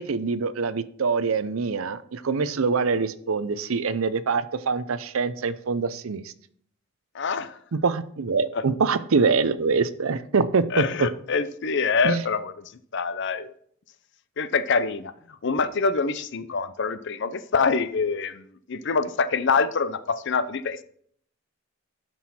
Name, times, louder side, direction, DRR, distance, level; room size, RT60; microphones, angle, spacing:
voice 1, 0.0-6.3 7.7-11.1 12.0-12.2, right 4 dB, 70° right, 14 dB, 0.6 m, -24 dB
voice 2, 7.1-7.6 8.5-8.6 10.7-12.5 12.9-13.5 14.4-15.1 15.4-20.8, left 4 dB, 55° left, 13 dB, 0.6 m, -25 dB
11.5 x 6.2 x 4.3 m, 0.63 s
head